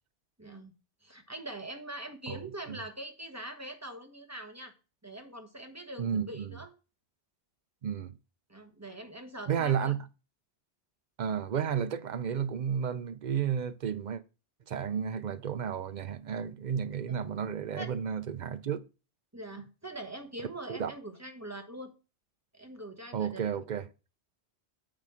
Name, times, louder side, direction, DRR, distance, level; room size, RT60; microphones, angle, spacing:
voice 1, 0.4-0.7 1.0-4.7 5.0-6.7 8.5-9.9 17.1-17.2 17.8-17.9 19.3-21.9 22.5-23.5, right 1 dB, 15° right, 1.1 m, -43 dB
voice 2, 6.0-6.6 7.8-8.1 9.5-10.0 11.2-14.2 14.7-18.8 20.7-20.9 23.1-23.8, right 8 dB, 55° right, 0.6 m, -32 dB
7.5 x 4.3 x 4.9 m
omnidirectional pair, 1.1 m